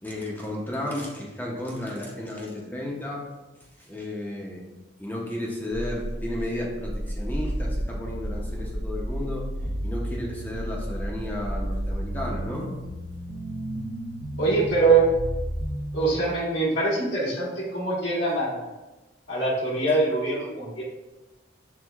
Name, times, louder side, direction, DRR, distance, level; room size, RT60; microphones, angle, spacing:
voice 1, 0.0-3.3 3.8-4.6 5.0-12.7, left 1 dB, 10° left, -2 dB, 0.5 m, -33 dB
sound 1, 5.7-16.1, equal, 45° right, 0.5 m, -32 dB
voice 2, 14.4-15.1 15.9-18.7 19.3-20.8, right 3 dB, 75° left, -6 dB, 1.3 m, -23 dB
6.2 x 3.4 x 2.3 m, 1.1 s
head